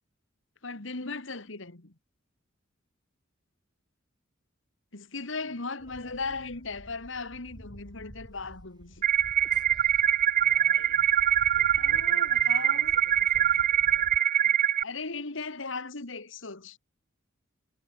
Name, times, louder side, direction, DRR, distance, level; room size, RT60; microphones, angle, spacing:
voice 1, 0.6-1.9 4.9-9.0 11.8-13.0 14.8-16.8, left 3 dB, 70° left, 2.1 m, -37 dB
voice 2, 5.3-6.7 10.4-11.1 11.5-14.2, left 2 dB, 35° left, 6.1 m, -57 dB
sound 1, 5.8-14.2, equal, 20° right, 6.9 m, -49 dB
sound 2, 9.0-14.8, right 10 dB, 45° right, 0.4 m, -24 dB
head